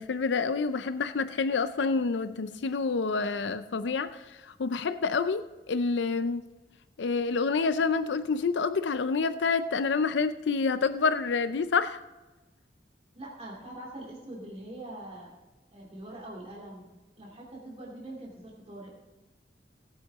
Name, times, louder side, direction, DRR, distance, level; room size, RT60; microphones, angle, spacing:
voice 1, 0.0-5.4 5.7-6.5 7.0-12.0, left 4 dB, 80° left, 0.5 m, -28 dB
voice 2, 13.1-15.3 15.7-16.9 17.2-18.9, right 1 dB, 35° right, 2.5 m, -43 dB
18.0 x 8.5 x 3.6 m
head